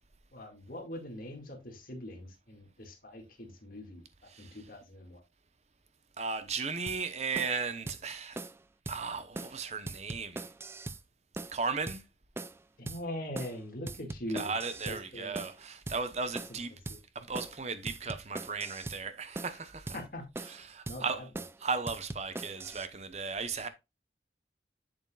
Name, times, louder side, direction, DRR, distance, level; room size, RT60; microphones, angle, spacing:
voice 1, 0.3-5.2 12.8-14.5 14.9-15.4 16.5-16.6 16.9-17.0 19.4-19.5 19.9-20.5 20.9-21.4, left 1 dB, 50° left, 2.0 m, -42 dB
voice 2, 6.2-8.4 8.9-10.4 11.5-12.0 14.3-16.7 17.1-20.0 20.4-21.3 21.6-23.7, right 4 dB, 40° right, 0.8 m, -36 dB
sound 1, 6.9-7.0 7.4-7.6 7.9-8.0 8.4-8.6 8.9-9.0 9.4-9.6 9.9-11.0 11.4-11.6 11.9-12.0 12.4-12.6 12.9-13.0 13.4-13.6 13.9-15.0 15.4-15.6 15.9-16.0 16.4-16.6 16.9-17.0 17.4-17.6 17.9-19.0 19.4-19.6 19.9-20.0 20.4-20.6 20.9-21.0 21.4-21.6 21.9-22.9, right 2 dB, 15° right, 0.3 m, -41 dB
8.1 x 7.1 x 2.3 m
head